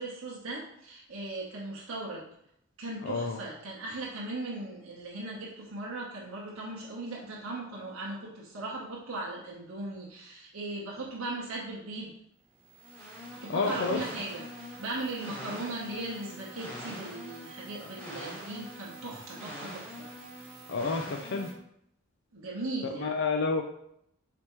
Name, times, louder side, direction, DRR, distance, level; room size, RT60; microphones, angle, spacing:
voice 1, 0.0-2.2 2.8-12.1 13.2-20.1 22.3-23.2, right 2 dB, 75° right, -5 dB, 0.9 m, -38 dB
voice 2, 3.0-3.4 13.5-14.0 20.7-21.5 23.0-23.6, left 4 dB, 60° left, 4 dB, 0.4 m, -29 dB
sound 1, 12.6-21.5, equal, 10° left, 1.5 m, -43 dB
4.3 x 3.4 x 3.0 m, 0.74 s
head